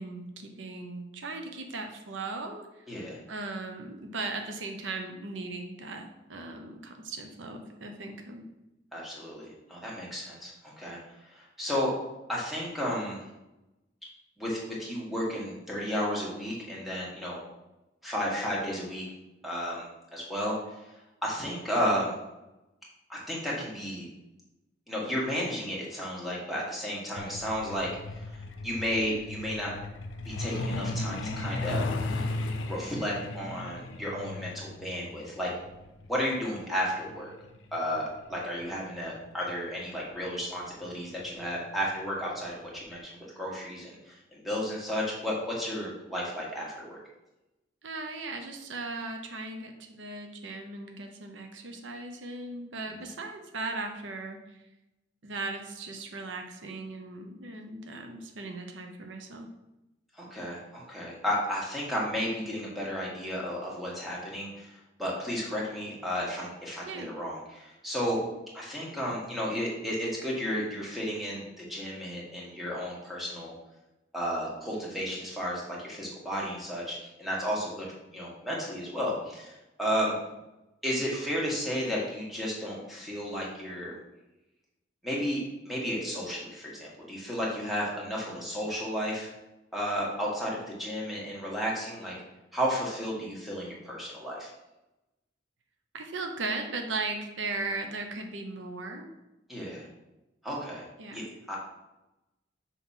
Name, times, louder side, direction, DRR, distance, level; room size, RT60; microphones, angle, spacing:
voice 1, 0.0-2.8 3.3-8.5 47.8-54.4 55.2-59.5 66.8-67.1 95.9-99.1 101.0-101.3, right 3 dB, 85° right, 4 dB, 0.7 m, -37 dB
voice 2, 2.9-3.2 8.9-11.0 11.3-11.9 12.3-13.2 14.4-17.4 18.0-19.0 19.4-20.6 20.8-20.9 21.2-22.1 23.1-24.1 24.9-29.7 30.2-32.3 32.7-35.5 36.1-37.3 37.7-47.0 60.1-68.2 68.5-73.5 74.1-80.2 80.8-83.9 85.0-85.4 85.6-89.3 89.7-92.1 92.5-94.5 99.5-99.9 100.4-100.8 101.1-101.2 101.5-101.6, equal, ahead, -5 dB, 1.5 m, -33 dB
Truck, 27.2-39.5 40.7-40.9 41.3-41.4 41.8-42.1 42.4-42.5 43.0-43.1, left 2 dB, 90° left, 0.6 m, -36 dB
5.8 x 3.0 x 5.5 m, 0.96 s
head